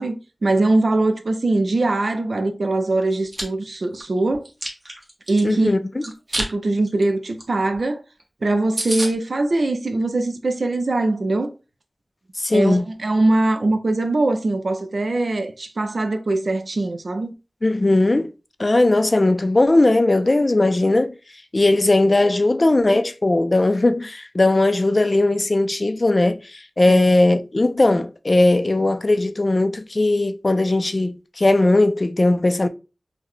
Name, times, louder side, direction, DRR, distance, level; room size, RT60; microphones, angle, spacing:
voice 1, 0.0-4.5 5.3-5.7 6.3-8.0 8.4-11.5 12.5-17.3 26.9-27.0, right 2 dB, 80° right, 0.5 m, -22 dB
Chewing mastication, 3.1-3.4 3.9-5.4 6.0-6.5 6.8-7.0 7.4-7.5 7.7-7.8 8.2-8.3 8.5-8.6 8.8-9.1, right 1 dB, 40° right, 1.1 m, -28 dB
voice 2, 5.4-6.0 12.4-12.9 17.6-18.3 18.6-21.1 21.5-32.7, left 2 dB, 45° left, 0.3 m, -18 dB
3.8 x 2.1 x 3.1 m
wide cardioid pair, 55°, 0 cm